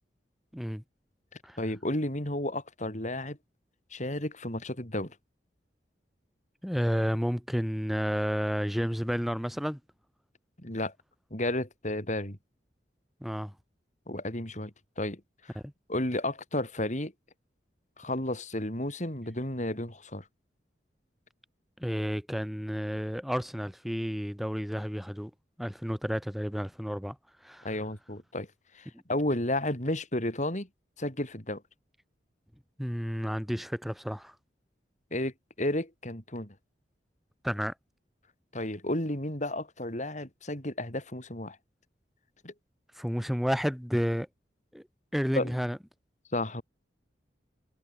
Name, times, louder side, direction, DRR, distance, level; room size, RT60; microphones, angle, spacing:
voice 1, 0.5-0.8 1.4-1.6 6.6-9.8 13.2-13.5 15.5-15.7 21.8-25.3 25.6-27.2 27.4-27.7 32.8-34.3 37.4-37.7 42.9-44.3 44.7-44.8 45.1-45.8, equal, ahead, 5.1 m, -31 dB
voice 2, 1.6-3.4 3.9-5.1 10.6-10.9 11.3-12.4 14.1-14.7 15.0-15.5 15.9-17.1 18.0-20.2 27.6-28.5 28.7-30.7 31.0-31.6 35.1-35.3 35.6-36.5 38.5-41.6 42.4-42.5 45.4-45.5 46.3-46.6, left 1 dB, 45° left, 5.7 m, -32 dB
head